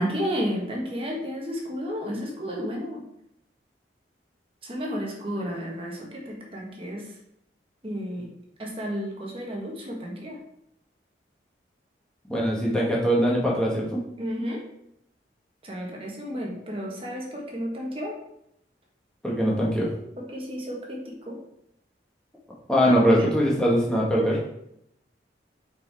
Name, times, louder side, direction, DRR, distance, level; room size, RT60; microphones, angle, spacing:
voice 1, 0.0-3.0 4.6-7.1 7.8-8.3 8.6-10.4 14.2-14.6 15.6-18.1 20.3-21.4 24.2-24.3, equal, 30° right, -2 dB, 1.3 m, -32 dB
voice 2, 12.3-14.0 19.2-19.9 22.7-24.3, equal, 5° left, -5 dB, 1.5 m, -22 dB
5.3 x 4.5 x 4.5 m, 0.76 s
head